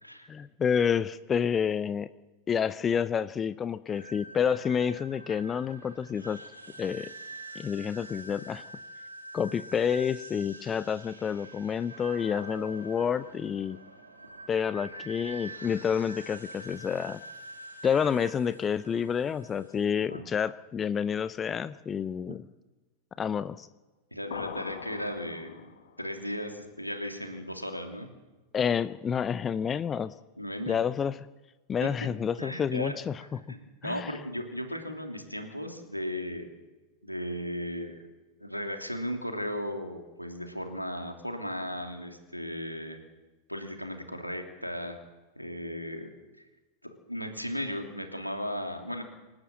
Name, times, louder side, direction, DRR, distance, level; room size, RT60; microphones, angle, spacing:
voice 1, 0.3-2.1 2.5-6.4 6.8-7.1 7.5-8.6 9.3-13.8 14.5-17.2 17.8-22.5 23.2-23.7 28.5-30.1 30.7-31.2 31.7-33.6 33.8-34.2, left 7 dB, 20° left, 16 dB, 0.6 m, -29 dB
sound 1, 3.9-19.8, right 2 dB, 80° right, 3.3 m, -46 dB
voice 2, 24.1-25.7 26.0-28.1 30.4-30.8 31.8-31.9 32.4-32.9 33.2-33.6 33.8-36.6 37.0-38.0 38.4-43.0 43.5-45.0 45.4-46.1 47.1-49.0, equal, 90° left, 4 dB, 3.0 m, -36 dB
sound 2, 24.3-26.0, left 8 dB, 60° left, 1.7 m, -41 dB
27.0 x 12.5 x 7.7 m, 1.2 s
figure-of-eight pair, 90°, 0 cm